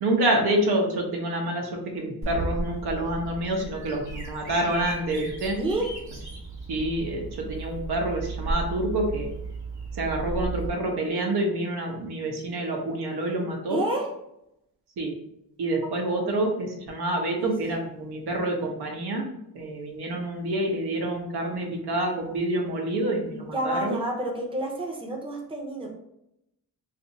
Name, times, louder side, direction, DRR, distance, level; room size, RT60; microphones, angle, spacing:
voice 1, 0.0-5.6 6.7-9.3 9.9-13.8 15.0-15.1 15.6-19.3 19.5-24.0, right 1 dB, 85° right, 1 dB, 0.9 m, -27 dB
Bird vocalization bird call bird song, 2.2-10.7, right 3 dB, 50° right, 1.1 m, -35 dB
voice 2, 5.5-5.9 13.7-14.1 15.8-15.9 17.4-17.6 23.5-25.9, right 1 dB, 15° right, 0 dB, 0.6 m, -29 dB
2.6 x 2.6 x 4.0 m, 0.81 s
wide cardioid pair, 145°, 38 cm